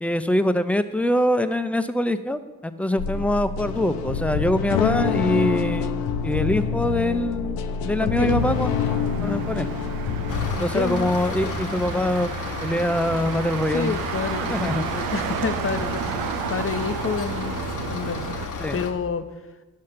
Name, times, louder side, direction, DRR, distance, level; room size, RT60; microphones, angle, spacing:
voice 1, 0.0-5.9 6.2-7.6 7.8-8.8 9.2-9.7 10.5-12.3 12.6-14.0 14.5-14.8 18.6-18.8, left 1 dB, 5° left, 11 dB, 0.7 m, -24 dB
sound 1, 3.0-10.6, left 7 dB, 85° left, 0.6 m, -26 dB
voice 2, 8.0-8.4 10.6-11.1 13.7-17.6 17.9-19.3, left 6 dB, 40° left, 10 dB, 0.8 m, -29 dB
Motor vehicle (road), 8.4-18.5, right 11 dB, 80° right, 0.5 m, -32 dB
sound 2, 10.3-18.9, left 5 dB, 60° left, 1.1 m, -32 dB
9.5 x 6.4 x 5.7 m, 1.2 s
supercardioid pair, 45°, 34 cm